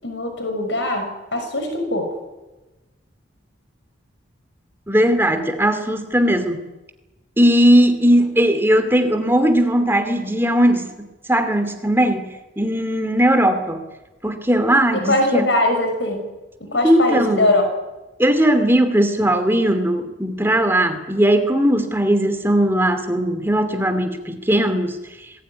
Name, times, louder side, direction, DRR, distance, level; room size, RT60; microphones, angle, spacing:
voice 1, 0.0-2.1 14.9-16.2 16.6-17.6, left 1 dB, 70° left, 5 dB, 6.3 m, -21 dB
voice 2, 4.9-6.7 7.4-10.9 11.3-12.3 12.6-13.8 14.2-15.5 16.8-17.5 18.2-25.0, right 1 dB, 10° right, 8 dB, 2.6 m, -18 dB
26.0 x 20.5 x 9.7 m, 1.1 s
head